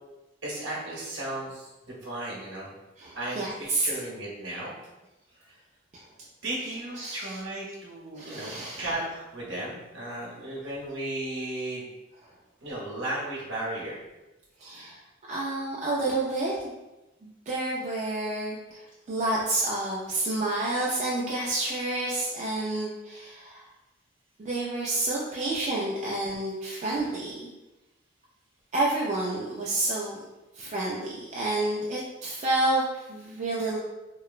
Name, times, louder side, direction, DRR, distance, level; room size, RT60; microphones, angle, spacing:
voice 1, 0.4-2.7 3.2-4.7 5.4-5.6 6.4-11.9 12.6-14.0, right 1 dB, 65° right, -5 dB, 0.8 m, -35 dB
voice 2, 3.0-3.9 5.9-6.0 7.0-7.4 8.1-8.9 14.6-15.0 15.3-16.6 17.2-18.8 19.1-23.6 24.4-27.5 28.7-30.2 30.5-33.8, right 2 dB, 35° right, -5 dB, 0.3 m, -29 dB
2.9 x 2.0 x 2.4 m, 1.0 s
head